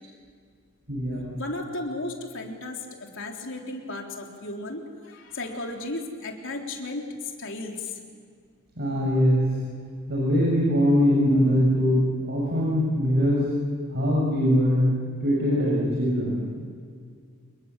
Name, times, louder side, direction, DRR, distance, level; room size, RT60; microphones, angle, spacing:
voice 1, 0.9-1.3 8.8-9.5 10.1-13.5 13.9-14.9 15.2-16.4, equal, 55° right, -4 dB, 7.1 m, -22 dB
voice 2, 1.4-8.0, left 2 dB, 60° left, 1 dB, 3.9 m, -35 dB
28.5 x 22.0 x 7.6 m, 2.1 s
head